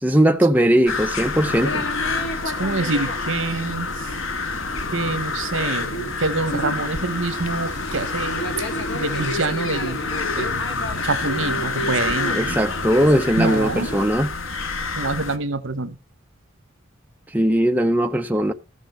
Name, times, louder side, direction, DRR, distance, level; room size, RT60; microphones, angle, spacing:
voice 1, 0.0-1.9 12.3-14.3 17.3-18.5, right 1 dB, 10° right, 0.6 m, -19 dB
sound 1, 0.9-15.4, left 4 dB, 90° left, 1.2 m, -28 dB
sound 2, 1.4-14.1, equal, 65° left, 1.9 m, -31 dB
voice 2, 2.4-4.2 4.9-8.4 8.9-10.7 11.0-12.6 13.4-13.9 15.0-16.0, right 3 dB, 70° right, 1.1 m, -26 dB
14.0 x 6.6 x 6.7 m
head